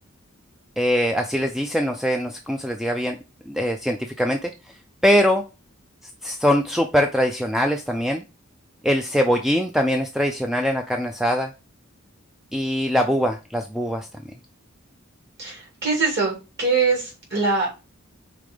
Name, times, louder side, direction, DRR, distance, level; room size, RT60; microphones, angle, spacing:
voice 1, 0.8-3.2 3.5-4.5 5.0-5.4 6.2-8.2 8.8-11.5 12.5-14.1, equal, ahead, 4 dB, 0.4 m, -22 dB
voice 2, 15.4-17.7, right 4 dB, 50° right, -2 dB, 2.6 m, -23 dB
5.1 x 3.7 x 5.1 m, 0.29 s
head